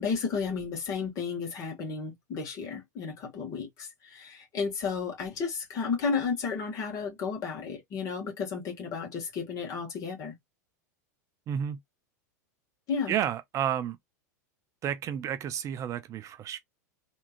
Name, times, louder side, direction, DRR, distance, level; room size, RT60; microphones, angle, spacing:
voice 1, 0.0-10.3 12.9-13.2, left 5 dB, 40° left, 2.0 m, -33 dB
voice 2, 11.5-11.8 13.1-14.0 14.8-16.6, right 9 dB, 35° right, 0.5 m, -31 dB
3.6 x 2.9 x 2.5 m
hypercardioid pair, 90°, 9 cm